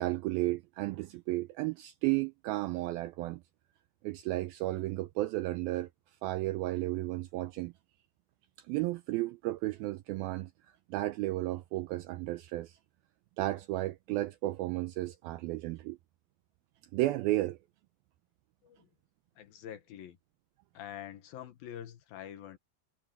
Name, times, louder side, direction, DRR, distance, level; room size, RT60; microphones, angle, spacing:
voice 1, 0.0-3.4 4.0-5.9 6.2-7.7 8.6-10.5 10.9-12.8 13.4-16.0 16.9-17.6, right 17 dB, 90° right, 2.1 m, -33 dB
voice 2, 19.4-20.2 20.7-22.6, left 10 dB, 65° left, 2.9 m, -45 dB
omnidirectional pair, 4.9 m